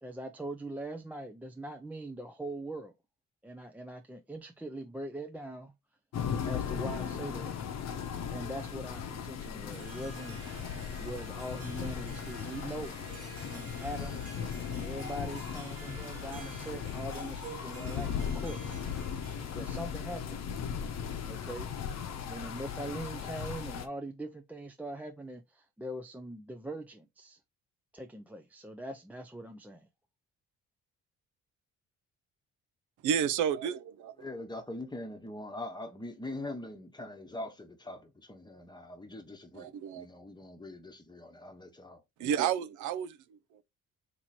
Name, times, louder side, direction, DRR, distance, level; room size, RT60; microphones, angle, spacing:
voice 1, 0.0-2.9 3.4-5.7 6.4-7.6 8.3-10.4 11.0-13.0 13.5-14.2 14.7-18.8 19.5-20.4 21.3-21.7 22.3-27.4 27.9-29.9, right 1 dB, 5° right, 0.4 m, -42 dB
sound 1, 6.1-23.9, left 7 dB, 60° left, 0.8 m, -37 dB
Harp, 9.4-20.0, right 6 dB, 55° right, 1.0 m, -50 dB
voice 2, 33.0-34.3 39.5-40.1 42.2-43.1, right 8 dB, 75° right, 0.5 m, -31 dB
voice 3, 34.2-42.3, left 2 dB, 15° left, 0.9 m, -43 dB
3.0 x 2.8 x 4.1 m
cardioid pair, 90°, 30 cm